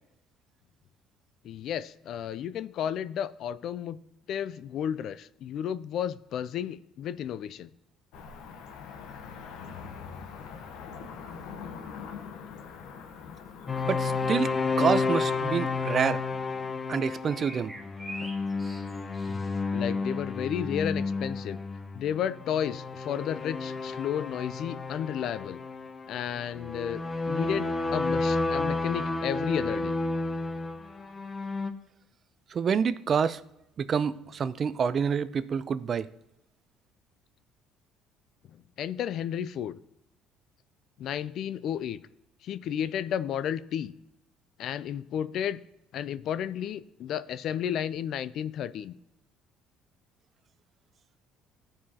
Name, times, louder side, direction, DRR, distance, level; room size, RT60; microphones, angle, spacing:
voice 1, 1.4-4.0 4.3-7.7 19.3-21.6 21.9-25.6 26.1-29.9 38.5-39.8 41.0-42.0 42.4-43.9 44.6-45.6 45.9-48.9, left 9 dB, 60° left, 0.4 m, -32 dB
Cricket / Motor vehicle (road), 8.1-14.4, left 6 dB, 80° left, 1.0 m, -43 dB
sound 1, 13.7-31.7, left 3 dB, 25° left, 0.7 m, -31 dB
sound 2, 13.8-14.8 17.3-19.6, right 1 dB, 5° right, 1.1 m, -45 dB
voice 2, 13.9-14.5 14.8-16.2 16.9-17.7 32.5-33.4 33.8-36.1, right 6 dB, 45° right, 0.4 m, -27 dB
13.5 x 4.7 x 2.8 m
cardioid pair, 95°, 0 cm